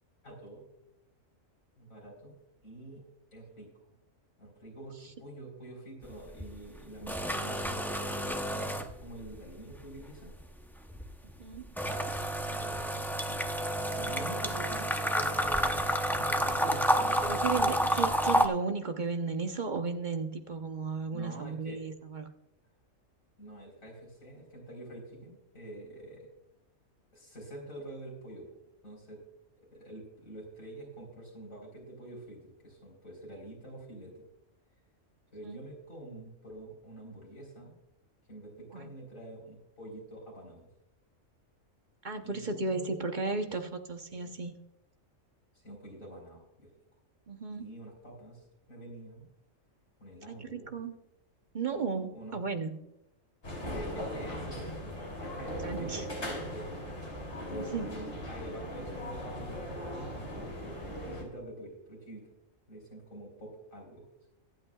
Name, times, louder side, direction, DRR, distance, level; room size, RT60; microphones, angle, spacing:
voice 1, 0.2-0.6 1.8-2.3 2.6-3.0 3.3-3.7 4.4-10.3 12.4-15.9 16.2-17.3 21.1-21.8 23.4-26.3 27.1-28.5 28.8-29.2 29.6-34.3 35.3-37.8 38.3-40.7 42.2-43.0 44.1-44.3 45.6-46.7 47.6-49.3 50.0-50.7 51.9-52.3 53.7-54.9 55.2-56.7 57.5-60.7 61.0-62.3 62.7-64.0, right 1 dB, 75° left, -2 dB, 4.7 m, -46 dB
sound 1, 6.0-6.5 6.8-9.4 9.7-18.5, equal, ahead, 0.5 m, -30 dB
voice 2, 11.4-11.8 17.2-22.3 35.4-35.6 38.7-38.9 42.0-44.5 47.3-47.7 50.3-50.9 51.5-52.8 55.6-56.0 57.5-57.9, right 4 dB, 40° right, 6 dB, 1.0 m, -34 dB
sound 2, 53.4-61.2, equal, 55° left, 3.6 m, -39 dB
24.0 x 8.6 x 2.4 m, 0.86 s
omnidirectional pair, 1.4 m